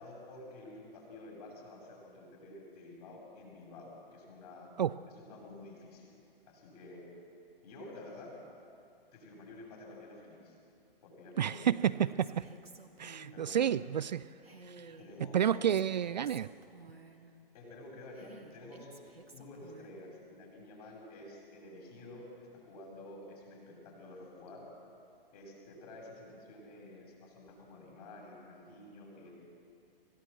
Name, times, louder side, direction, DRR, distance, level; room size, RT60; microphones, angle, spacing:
voice 1, 0.0-4.7 5.0-6.1 6.5-7.0 7.6-8.3 9.1-10.6 11.0-12.2 13.3-13.7 15.0-15.7 17.5-18.9 19.3-24.7 25.3-29.3, left 2 dB, 40° left, -1 dB, 7.9 m, -50 dB
Female speech woman speaking, 11.3-13.5 14.4-17.3 18.1-20.0, right 2 dB, 90° right, 2.3 m, -54 dB
voice 2, 11.4-12.4 13.0-14.3 14.7-14.9 15.3-16.5, right 9 dB, 50° right, 16 dB, 0.5 m, -30 dB
25.5 x 17.0 x 7.7 m, 2.6 s
figure-of-eight pair, 125°, 29 cm